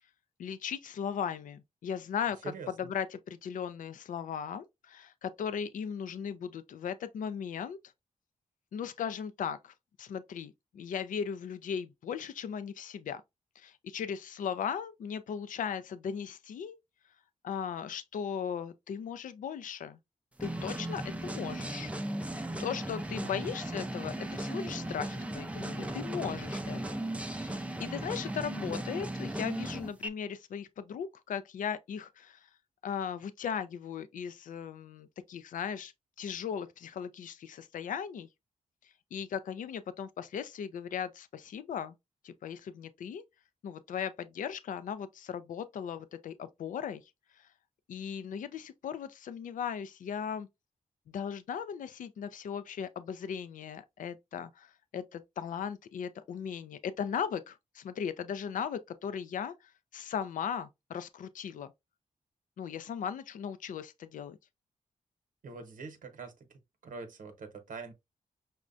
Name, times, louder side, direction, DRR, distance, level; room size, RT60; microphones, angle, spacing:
voice 1, 0.4-7.8 8.7-13.2 13.6-16.8 17.4-20.0 20.4-21.9 22.6-27.0 27.3-32.5 32.8-35.9 36.2-38.3 39.1-41.9 42.2-43.2 43.6-47.0 47.3-47.5 47.9-50.5 51.1-61.7 62.6-64.4, left 7 dB, 70° left, 0.4 m, -37 dB
voice 2, 2.4-2.9 23.2-23.3 65.4-67.9, right 4 dB, 80° right, 0.9 m, -44 dB
sound 1, 20.4-30.1, right 1 dB, 10° right, 0.5 m, -37 dB
6.1 x 2.2 x 2.5 m
wide cardioid pair, 135°, 14 cm